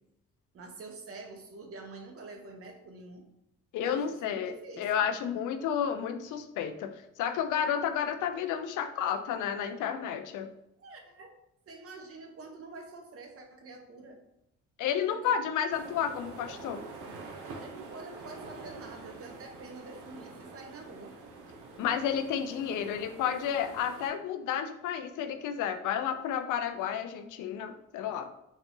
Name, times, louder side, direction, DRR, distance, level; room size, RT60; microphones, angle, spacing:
voice 1, 0.5-3.3 3.8-5.1 10.8-11.3 11.7-14.2 15.1-15.4 17.6-21.2, right 3 dB, 50° right, 4 dB, 0.9 m, -47 dB
voice 2, 3.7-6.9 7.2-10.5 14.8-16.8 21.8-28.3, left 8 dB, 85° left, 8 dB, 0.5 m, -31 dB
sound 1, 15.7-24.1, right 3 dB, 85° right, 0.8 m, -46 dB
4.1 x 2.4 x 3.8 m, 0.83 s
cardioid pair, 90°, 30 cm